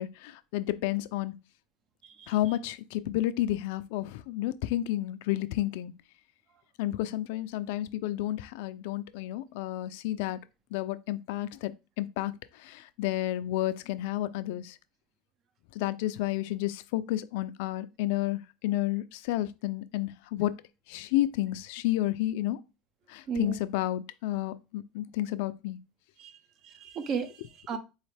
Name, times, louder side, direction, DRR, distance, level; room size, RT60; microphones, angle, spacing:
voice 1, 0.0-1.3 2.3-5.9 6.8-10.4 10.7-11.7 12.0-14.8 15.7-20.5 20.9-22.6 23.1-25.8, left 15 dB, 75° left, 0.4 m, -31 dB
voice 2, 23.3-23.6 26.2-26.4 26.6-27.8, right 6 dB, 40° right, 0.8 m, -35 dB
4.0 x 3.1 x 3.3 m
supercardioid pair, 120°, 0 cm